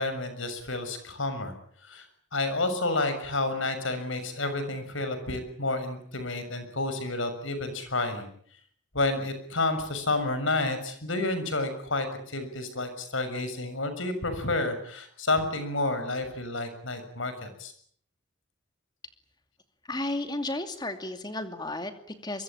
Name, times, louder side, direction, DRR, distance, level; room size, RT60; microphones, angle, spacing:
voice 1, 0.0-1.5 1.8-2.1 2.3-8.3 8.9-17.7, left 2 dB, 75° left, 10 dB, 6.7 m, -30 dB
voice 2, 19.9-22.4, left 2 dB, 20° left, 8 dB, 2.5 m, -33 dB
24.5 x 23.0 x 8.8 m, 0.63 s
head